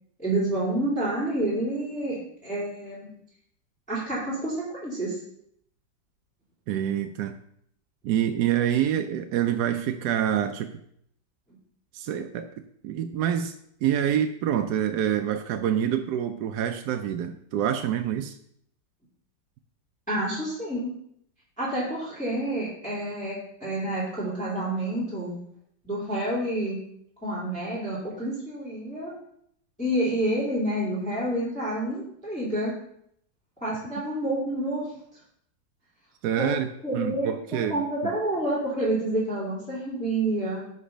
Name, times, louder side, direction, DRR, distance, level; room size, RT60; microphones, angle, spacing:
voice 1, 0.2-3.1 3.9-5.2 20.1-20.9 21.6-25.3 25.8-26.8 27.2-29.2 29.8-32.7 33.6-34.9 36.4-36.6 36.8-37.3 37.7-40.6, right 1 dB, 5° left, -7 dB, 2.5 m, -28 dB
voice 2, 6.7-7.3 8.0-10.7 11.9-12.5 12.8-13.6 13.8-18.3 36.2-37.8, right 10 dB, 70° right, 6 dB, 1.0 m, -26 dB
9.8 x 4.1 x 5.1 m, 0.70 s
omnidirectional pair, 2.1 m